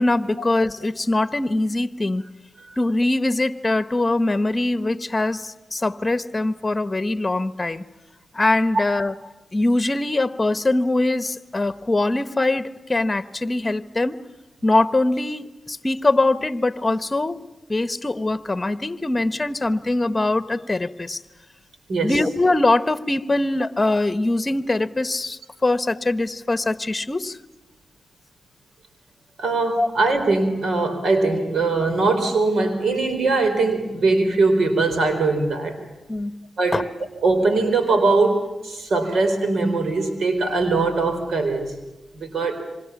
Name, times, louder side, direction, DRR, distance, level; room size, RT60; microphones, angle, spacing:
voice 1, 0.0-2.2 2.8-7.8 8.3-9.1 9.5-14.2 14.6-21.2 22.0-27.4 29.8-29.9 36.1-36.4 36.7-36.8, left 2 dB, 30° left, 1.1 m, -22 dB
voice 2, 29.4-35.8 36.6-36.8 37.2-41.7 42.2-42.6, right 3 dB, 80° right, 4.2 m, -21 dB
26.5 x 25.5 x 7.2 m
cardioid pair, 45°, 0 cm